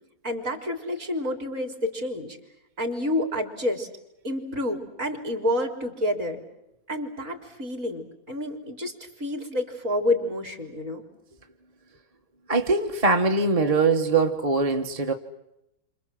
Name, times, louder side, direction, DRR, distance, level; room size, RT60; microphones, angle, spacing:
voice 1, 0.2-2.3 2.8-3.9 4.2-6.4 6.9-8.9 9.2-11.0, left 1 dB, 40° right, 4 dB, 4.1 m, -29 dB
voice 2, 12.5-15.1, right 3 dB, 20° right, 4 dB, 1.3 m, -22 dB
29.5 x 26.5 x 7.7 m, 0.88 s
omnidirectional pair, 2.0 m